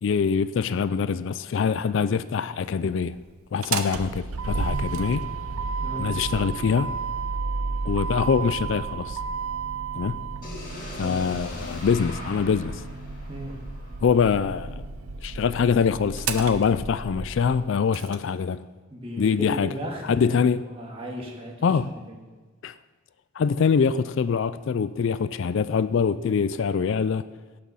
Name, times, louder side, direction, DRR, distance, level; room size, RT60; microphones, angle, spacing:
voice 1, 0.0-3.2 3.5-5.3 6.0-6.9 7.9-9.2 10.0-10.2 11.0-12.8 14.0-14.8 15.2-18.6 19.2-19.7 20.0-20.6 21.6-21.9 22.6-22.7 23.4-27.2, left 6 dB, 60° left, 0.3 m, -24 dB
Motor vehicle (road), 3.5-18.2, right 4 dB, 90° right, 0.8 m, -32 dB
voice 2, 5.8-6.1 10.9-11.4 13.3-13.5 18.9-20.5 20.8-22.2, equal, 25° right, 1.9 m, -36 dB
sound 1, 10.4-14.3, left 1 dB, 40° left, 2.1 m, -41 dB
17.5 x 6.1 x 5.5 m
head